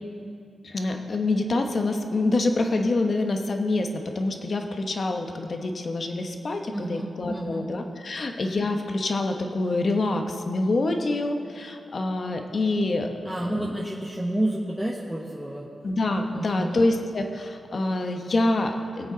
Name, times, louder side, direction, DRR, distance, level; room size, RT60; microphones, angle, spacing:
voice 1, 0.6-13.1 13.4-13.7 15.8-19.1, left 2 dB, 50° left, 4 dB, 1.1 m, -26 dB
voice 2, 6.7-7.7 13.2-15.7 16.3-16.8, right 1 dB, ahead, -5 dB, 1.2 m, -30 dB
21.5 x 8.0 x 4.0 m, 2.4 s
wide cardioid pair, 110°, 0 cm